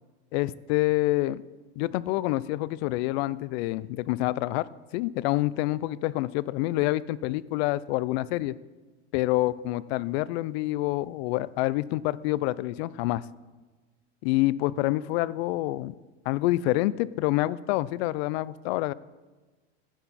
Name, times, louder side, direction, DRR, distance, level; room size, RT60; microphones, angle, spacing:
voice 1, 0.3-1.4 1.8-8.6 9.1-13.2 14.2-15.9 16.3-18.9, left 17 dB, 65° left, 19 dB, 0.5 m, -27 dB
12.0 x 10.0 x 4.1 m, 1.2 s
supercardioid pair, 145°, 34 cm